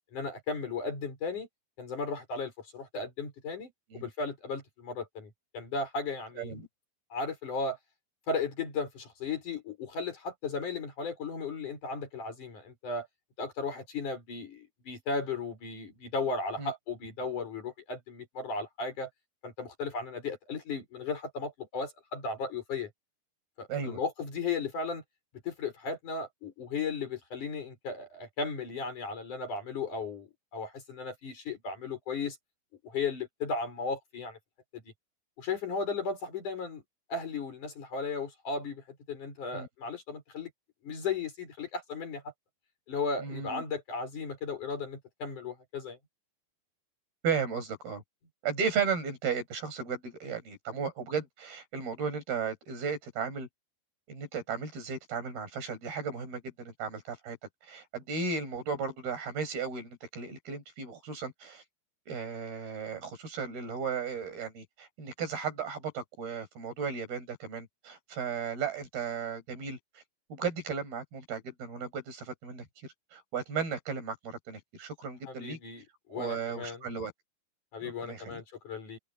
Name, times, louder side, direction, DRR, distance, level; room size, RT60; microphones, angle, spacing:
voice 1, 0.1-1.5 1.8-6.5 7.1-7.8 8.3-13.1 13.4-19.1 19.4-22.9 23.6-25.0 25.5-32.4 32.8-34.4 34.7-34.8 35.4-36.8 37.1-40.5 40.8-42.2 42.9-46.0 75.3-76.9 77.7-79.0, left 4 dB, 50° left, 6.9 m, -35 dB
voice 2, 43.2-43.6 47.2-48.0 48.4-53.5 54.1-57.4 57.7-61.6 62.1-70.0 70.3-72.6 73.1-75.6 76.1-77.1 78.0-78.4, right 6 dB, 65° right, 8.2 m, -35 dB
omnidirectional pair, 4.7 m